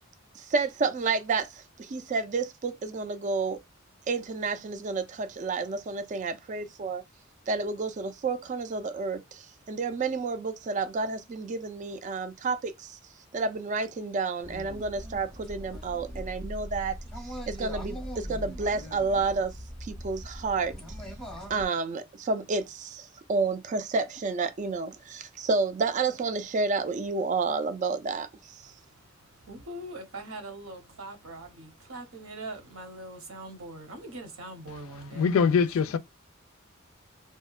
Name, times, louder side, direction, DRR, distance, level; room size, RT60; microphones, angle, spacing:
voice 1, 0.4-3.6 4.1-7.0 7.5-13.0 13.3-17.0 17.2-19.5 19.8-20.7 21.5-28.7, right 4 dB, 35° right, 0.3 m, -30 dB
sound 1, 14.4-21.7, equal, ahead, 0.6 m, -40 dB
voice 2, 28.6-29.1 29.4-35.5, right 2 dB, 80° right, 0.8 m, -42 dB
voice 3, 35.1-36.0, left 6 dB, 75° left, 0.3 m, -23 dB
2.7 x 2.2 x 2.3 m
head